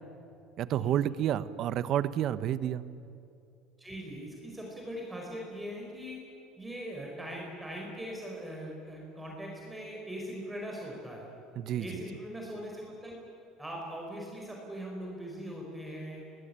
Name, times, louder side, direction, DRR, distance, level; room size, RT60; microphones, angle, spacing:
voice 1, 0.6-2.8 11.6-12.0, right 11 dB, 50° right, 15 dB, 1.0 m, -30 dB
voice 2, 3.8-6.2 6.6-11.3 11.8-13.2 13.6-16.2, equal, 5° right, -2 dB, 5.1 m, -41 dB
26.0 x 20.0 x 8.9 m, 2.6 s
cardioid pair, 130°, 0 cm